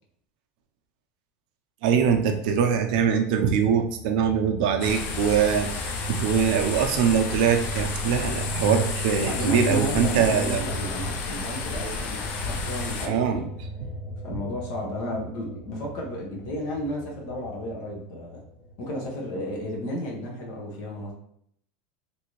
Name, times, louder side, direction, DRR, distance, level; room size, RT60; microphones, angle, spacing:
voice 1, 1.8-10.6 13.1-13.4, right 7 dB, 70° right, 5 dB, 0.5 m, -23 dB
sound 1, 4.0-19.8, right 1 dB, 90° left, 0.8 m, -37 dB
sound 2, 4.8-13.1, left 4 dB, 45° left, 0.5 m, -32 dB
voice 2, 9.2-13.5 14.2-18.4 18.8-21.1, equal, 60° left, -1 dB, 1.1 m, -33 dB
3.3 x 2.7 x 3.1 m, 0.67 s
supercardioid pair, 140°, 5 cm